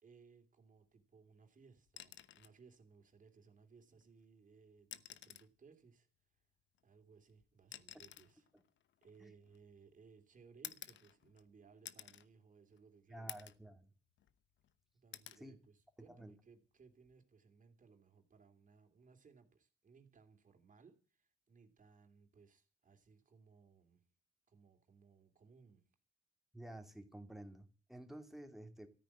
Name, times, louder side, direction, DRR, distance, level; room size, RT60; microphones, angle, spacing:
voice 1, 0.0-6.1 6.3-6.4 6.8-8.5 9.0-13.4 14.9-24.0 24.5-25.9, right 5 dB, 40° right, 3.2 m, -64 dB
sound 1, 1.9-2.6 4.0-4.1 4.8-5.6 6.7-9.8 10.6-11.5 11.8-12.3 12.7-12.8 13.3-13.7 14.1-14.7 15.1-15.4 16.9-17.1, left 11 dB, 70° left, 1.0 m, -52 dB
voice 2, 13.1-13.9 15.4-15.6 16.1-16.3 26.5-28.9, right 1 dB, ahead, 2.7 m, -52 dB
14.0 x 9.1 x 8.9 m
cardioid pair, 90°, 20 cm